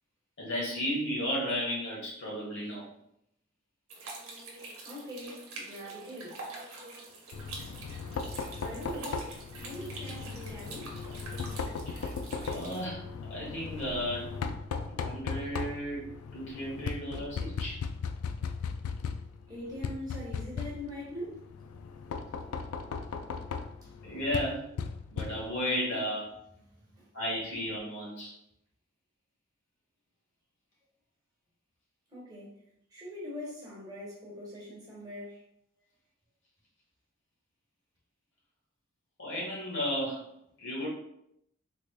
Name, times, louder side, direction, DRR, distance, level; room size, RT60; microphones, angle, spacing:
voice 1, 0.4-2.9 11.9-12.0 12.5-13.0 13.3-14.3 14.9-17.8 24.0-24.6 25.1-26.3 27.1-28.3 39.2-40.2 40.6-40.9, equal, 60° left, -5 dB, 1.4 m, -34 dB
sound 1, 3.9-12.9, right 2 dB, 80° right, 0.9 m, -45 dB
voice 2, 4.8-6.4 8.6-9.3 9.6-10.9 19.5-21.4 23.8-23.9 26.9-27.0 32.1-32.5 32.9-35.4, left 1 dB, 20° right, -6 dB, 1.2 m, -42 dB
Knock, 7.3-25.7, left 5 dB, 80° left, 0.3 m, -38 dB
3.9 x 3.1 x 2.2 m, 0.76 s
head